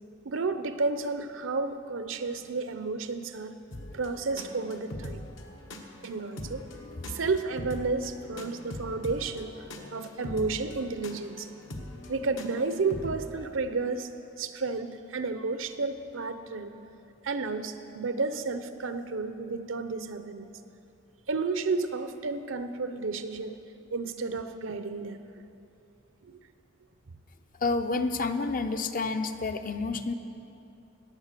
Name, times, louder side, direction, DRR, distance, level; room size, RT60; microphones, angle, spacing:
voice 1, 0.2-3.6 3.9-5.2 6.0-6.6 7.1-9.5 9.9-11.5 12.1-14.1 14.4-16.8 17.2-20.5 21.3-23.6 23.9-25.2 26.2-26.4, right 4 dB, 75° right, 10 dB, 0.8 m, -31 dB
sound 1, 3.7-13.5, left 1 dB, 70° left, 1.2 m, -42 dB
voice 2, 27.6-30.1, left 3 dB, 45° left, 8 dB, 0.7 m, -29 dB
15.5 x 9.7 x 6.7 m, 2.8 s
head